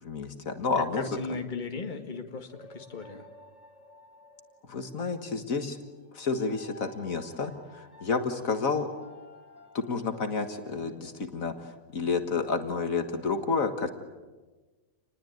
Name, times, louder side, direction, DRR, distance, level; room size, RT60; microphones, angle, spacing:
voice 1, 0.0-1.1 4.7-5.8 6.1-8.9 9.7-13.9, left 4 dB, 65° left, 7 dB, 2.0 m, -30 dB
voice 2, 0.9-3.3, left 4 dB, 30° left, 5 dB, 1.9 m, -37 dB
sound 1, 2.5-11.0, left 2 dB, 45° left, 4.0 m, -53 dB
28.0 x 20.5 x 9.3 m, 1.3 s
omnidirectional pair, 1.6 m